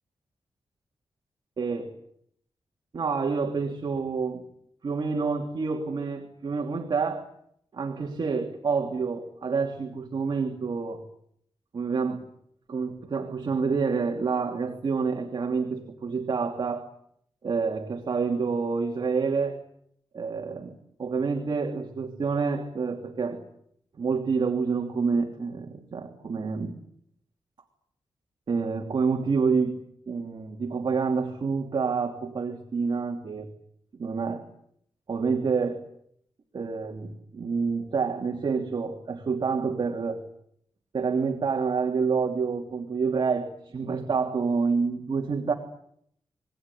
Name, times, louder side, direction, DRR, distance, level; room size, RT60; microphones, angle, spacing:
voice 1, 1.6-2.0 2.9-4.4 4.8-7.3 7.7-11.0 11.7-12.2 12.7-16.9 17.4-19.6 20.1-23.4 24.0-26.8 28.5-29.7 30.1-33.5 34.0-34.5 35.1-35.9 36.5-40.2 40.9-45.5, right 5 dB, 50° right, 2 dB, 2.9 m, -28 dB
28.0 x 20.5 x 10.0 m, 0.71 s
wide cardioid pair, 145°, 9 cm